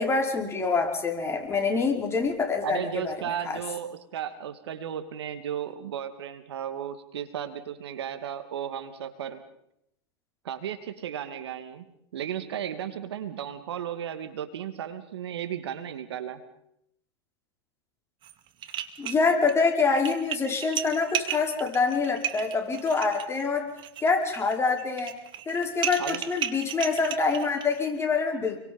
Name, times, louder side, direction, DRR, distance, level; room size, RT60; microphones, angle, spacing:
voice 1, 0.0-3.6 19.0-23.7 24.0-25.1 25.5-28.6, left 4 dB, 20° left, 2 dB, 5.3 m, -26 dB
voice 2, 2.6-9.4 10.4-11.8 12.1-16.4 26.0-26.2, right 9 dB, 80° right, 9 dB, 2.7 m, -34 dB
sound 1, 18.2-18.3 18.6-19.5 19.9-27.8, right 10 dB, 35° right, 2.4 m, -34 dB
29.5 x 23.5 x 5.5 m, 0.77 s
hypercardioid pair, 110°, 14 cm